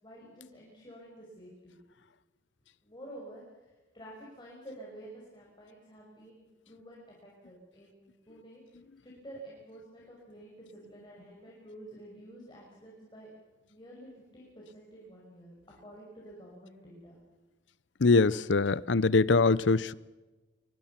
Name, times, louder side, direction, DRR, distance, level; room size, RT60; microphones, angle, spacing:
voice 1, 0.0-1.8 2.8-8.6 9.0-13.3 13.7-15.5 15.8-17.1, right 1 dB, 25° left, -3 dB, 6.1 m, -50 dB
voice 2, 18.0-19.9, left 3 dB, 75° left, 20 dB, 0.7 m, -23 dB
24.5 x 24.0 x 6.0 m, 1.2 s
head